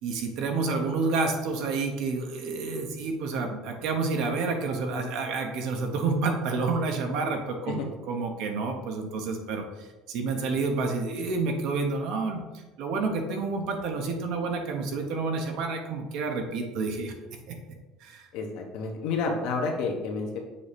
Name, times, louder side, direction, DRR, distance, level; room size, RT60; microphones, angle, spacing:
voice 1, 0.0-12.4 12.8-17.1 17.5-17.6 18.0-18.3, right 4 dB, 60° right, 4 dB, 1.0 m, -29 dB
voice 2, 18.3-20.4, left 4 dB, 65° left, 1 dB, 1.1 m, -30 dB
6.9 x 2.9 x 5.1 m, 1.1 s
cardioid pair, 160°, 0 cm